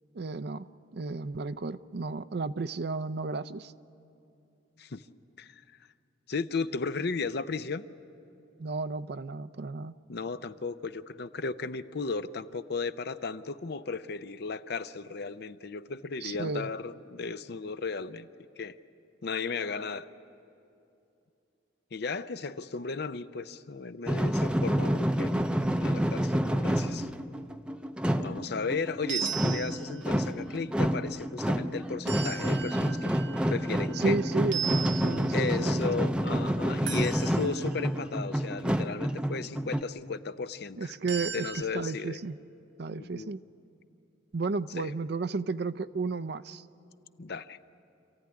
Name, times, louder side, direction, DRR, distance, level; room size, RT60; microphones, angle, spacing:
voice 1, 0.1-0.7 0.9-3.7 8.6-9.9 16.2-16.7 34.0-36.0 40.8-42.4 42.8-43.4 44.3-46.6, right 3 dB, 60° right, 14 dB, 0.5 m, -33 dB
voice 2, 6.3-7.8 10.1-18.3 18.6-18.8 19.2-20.1 21.9-25.5 25.8-27.1 28.1-33.1 33.5-34.2 35.3-42.2 42.9-43.3 44.8-44.9 47.2-47.6, left 4 dB, 60° left, 12 dB, 0.6 m, -35 dB
sound 1, 24.1-39.8, equal, 5° right, 0.6 m, -29 dB
sound 2, 29.1-30.3 32.1-34.1 34.5-35.7 36.9-37.9 41.1-41.6, right 8 dB, 80° right, 1.0 m, -37 dB
27.5 x 15.0 x 9.8 m, 2.7 s
head